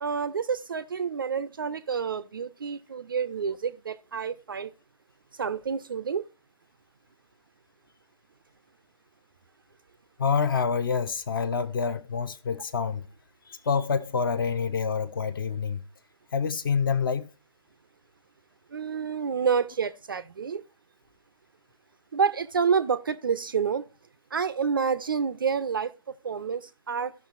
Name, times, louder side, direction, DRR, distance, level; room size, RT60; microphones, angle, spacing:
voice 1, 0.0-4.7 5.4-6.2 18.7-20.6 22.1-23.8 24.3-25.9 26.2-27.1, right 6 dB, 35° right, 0.4 m, -28 dB
voice 2, 10.2-13.0 13.5-15.8 16.3-17.3, left 6 dB, 35° left, 0.5 m, -27 dB
15.0 x 5.9 x 2.4 m
figure-of-eight pair, 145°, 20 cm